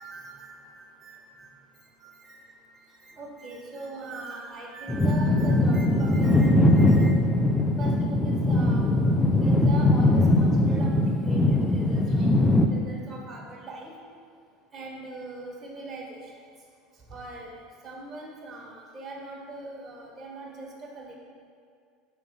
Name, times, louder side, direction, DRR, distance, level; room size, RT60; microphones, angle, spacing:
voice 1, 0.0-1.6 2.0-2.4 2.9-7.1 7.8-12.4 12.7-13.9 14.7-16.3 17.1-21.2, equal, 20° right, -4 dB, 1.3 m, -39 dB
sound 1, 4.9-12.7, left 1 dB, 15° left, 0.5 m, -21 dB
5.4 x 4.5 x 5.4 m, 2.2 s
supercardioid pair, 100°, 0 cm